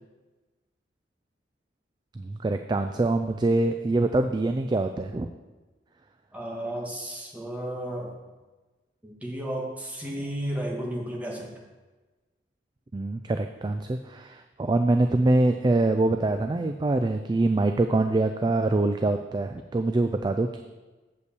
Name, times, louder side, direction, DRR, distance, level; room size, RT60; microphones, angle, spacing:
voice 1, 2.2-5.3 12.9-20.6, right 2 dB, 25° right, 7 dB, 0.3 m, -24 dB
voice 2, 6.3-8.1 9.0-11.5, right 1 dB, 10° right, -2 dB, 1.6 m, -33 dB
8.0 x 5.4 x 6.8 m, 1.2 s
head